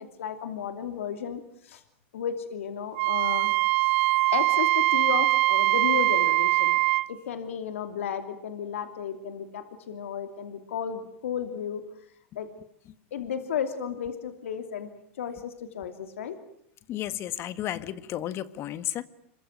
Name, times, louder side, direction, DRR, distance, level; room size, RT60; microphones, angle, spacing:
voice 1, 0.0-1.8 2.1-3.5 4.3-6.8 7.1-11.8 12.3-12.5 13.1-14.9 15.2-16.4, left 8 dB, 85° left, 8 dB, 2.9 m, -33 dB
Wind instrument woodwind instrument, 3.0-7.1, right 20 dB, 60° right, 1.3 m, -22 dB
voice 2, 16.9-19.0, left 12 dB, 40° left, 14 dB, 1.8 m, -33 dB
27.5 x 23.5 x 9.3 m, 0.69 s
supercardioid pair, 125°, 7 cm